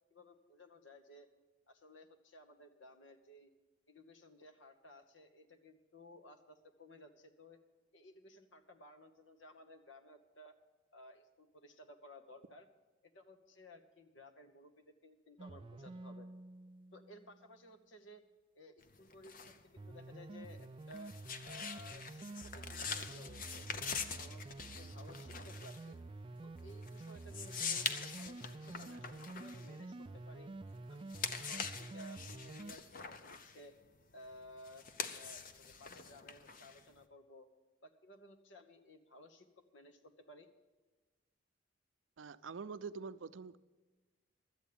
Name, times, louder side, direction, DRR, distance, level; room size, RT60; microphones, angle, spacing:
voice 1, 0.1-1.3 1.7-3.5 3.9-7.6 7.9-10.6 10.9-12.7 13.1-16.3 16.9-18.2 18.5-19.3 19.9-21.1 21.4-23.7 24.1-26.0 26.4-30.5 30.9-33.7 34.1-37.5 37.8-39.5 39.7-40.5, left 1 dB, 90° left, 1.2 m, -57 dB
sound 1, 15.4-17.5 19.8-32.7, right 2 dB, 25° right, 0.3 m, -49 dB
sound 2, 18.8-30.5 30.9-37.0, left 6 dB, 50° left, 0.7 m, -44 dB
voice 2, 42.2-43.6, right 5 dB, 90° right, 0.5 m, -45 dB
12.5 x 8.2 x 8.6 m
head